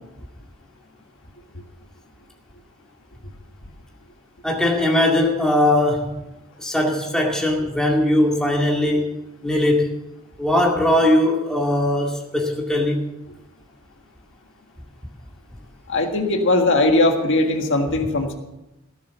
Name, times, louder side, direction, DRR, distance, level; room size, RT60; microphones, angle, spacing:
voice 1, 4.4-6.1 6.6-9.1 9.4-10.0 10.4-13.0, left 1 dB, 5° left, -2 dB, 2.2 m, -20 dB
voice 2, 15.9-18.3, left 2 dB, 60° left, 3 dB, 1.7 m, -19 dB
17.5 x 7.5 x 7.1 m, 0.97 s
head